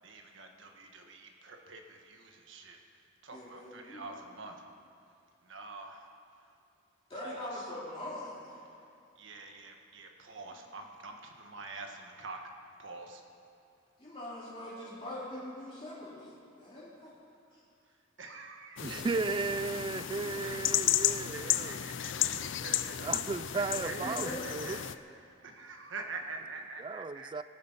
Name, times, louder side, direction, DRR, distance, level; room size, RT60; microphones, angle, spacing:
voice 1, 0.0-2.8 3.2-4.6 5.4-6.1 7.2-7.5 9.2-12.4 12.8-13.2 18.2-19.4 20.4-23.0 23.5-24.8 25.4-27.4, right 3 dB, 60° right, 3 dB, 1.5 m, -46 dB
voice 2, 3.3-4.1 7.1-8.6 10.5-10.6 14.0-17.1 23.7-24.6, left 1 dB, 25° left, -9 dB, 2.7 m, -42 dB
sound 1, 18.8-24.9, left 12 dB, 60° left, 0.5 m, -33 dB
voice 3, 18.8-21.8 23.0-24.8 26.8-27.4, right 3 dB, 25° right, 15 dB, 0.3 m, -35 dB
21.5 x 9.4 x 5.6 m, 2.5 s
head